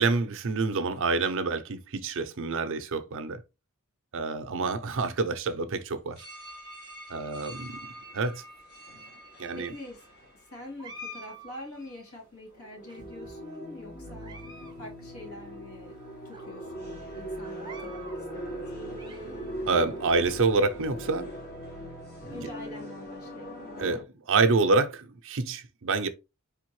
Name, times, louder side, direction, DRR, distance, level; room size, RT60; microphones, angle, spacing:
voice 1, 0.0-3.4 4.1-6.3 7.1-7.9 8.1-8.4 9.4-9.7 19.7-21.3 22.2-22.4 23.8-26.1, right 3 dB, 60° right, 0.6 m, -27 dB
sound 1, 6.2-11.5 12.1-12.2 12.5-24.0, right 1 dB, 45° left, 2.1 m, -41 dB
voice 2, 9.3-10.0 10.3-16.0 16.2-19.0 22.3-23.6, left 1 dB, 70° left, 2.5 m, -45 dB
sound 2, 10.8-12.2 12.9-13.6 14.0-14.8 15.0-15.1 15.8-15.9 16.3-16.4 17.4-18.2 18.7-19.6, equal, 20° right, 0.8 m, -47 dB
4.3 x 3.5 x 3.1 m
head